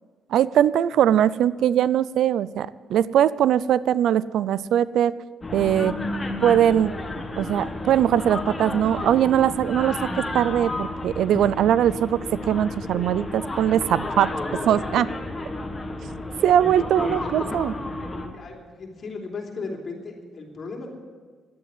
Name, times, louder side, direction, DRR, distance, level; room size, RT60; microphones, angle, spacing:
voice 1, 0.3-5.1 5.5-5.9 6.4-6.9 7.4-14.3 14.6-15.1 16.4-17.7, right 10 dB, 75° right, 18 dB, 0.4 m, -21 dB
sound 1, 5.4-18.3, left 2 dB, 25° left, 1.6 m, -31 dB
voice 2, 16.9-17.6 18.3-20.9, left 4 dB, 45° left, 0 dB, 3.2 m, -36 dB
11.0 x 8.9 x 9.7 m, 1.5 s
cardioid pair, 90°, 0 cm